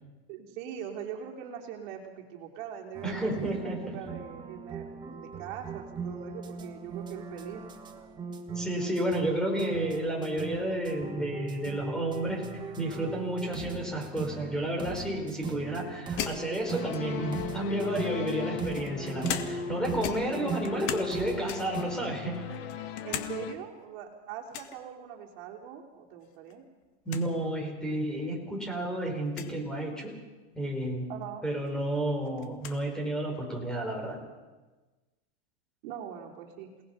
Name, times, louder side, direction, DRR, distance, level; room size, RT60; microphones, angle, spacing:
voice 1, 0.3-7.6 23.0-26.6 31.1-31.4 35.8-36.7, right 8 dB, 50° right, 0 dB, 3.3 m, -41 dB
sound 1, 2.9-21.8, right 4 dB, 15° right, 1.6 m, -39 dB
voice 2, 3.0-3.8 8.5-12.5 12.8-22.6 27.0-30.1 30.5-31.1 31.4-34.2, right 1 dB, ahead, 1 dB, 4.6 m, -31 dB
sound 2, 16.2-17.3 18.1-19.8 20.0-21.1 21.5-21.9 22.3-23.3 23.6-23.7 24.5-24.8 26.2-26.5 26.8-26.9 27.1-27.3 28.1-28.2 29.3-29.5 31.2-31.3 31.6-32.8, left 10 dB, 45° left, 2.0 m, -38 dB
sound 3, 16.7-23.5, left 10 dB, 70° left, 2.2 m, -39 dB
28.5 x 19.0 x 5.8 m, 1.2 s
supercardioid pair, 160°, 32 cm